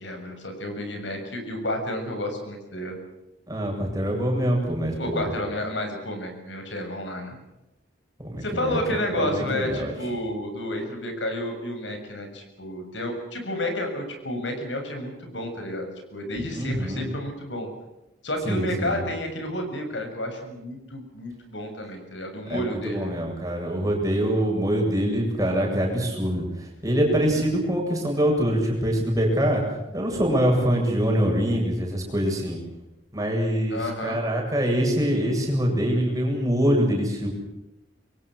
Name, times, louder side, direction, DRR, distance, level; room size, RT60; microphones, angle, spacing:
voice 1, 0.0-3.0 5.0-7.4 8.4-17.7 18.2-23.1 27.1-27.4 33.7-34.2, left 1 dB, 70° left, 5 dB, 6.9 m, -31 dB
voice 2, 3.5-5.2 8.2-8.8 9.1-9.9 16.5-17.1 18.4-19.0 22.5-29.6 29.9-32.6 33.1-37.3, equal, 20° right, 0 dB, 7.9 m, -24 dB
27.5 x 23.5 x 6.4 m, 0.97 s
head